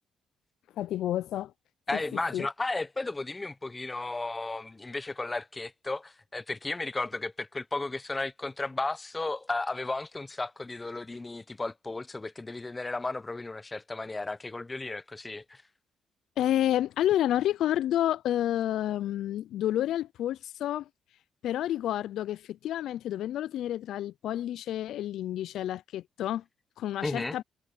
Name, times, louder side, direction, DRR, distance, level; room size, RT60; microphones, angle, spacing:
voice 1, 0.8-1.5 1.9-2.5 16.4-20.9 21.4-26.4 26.8-27.4, left 12 dB, 80° left, 0.4 m, -29 dB
voice 2, 1.9-15.6 27.0-27.4, left 2 dB, 20° left, 0.9 m, -34 dB
cardioid pair, 90°, 0 cm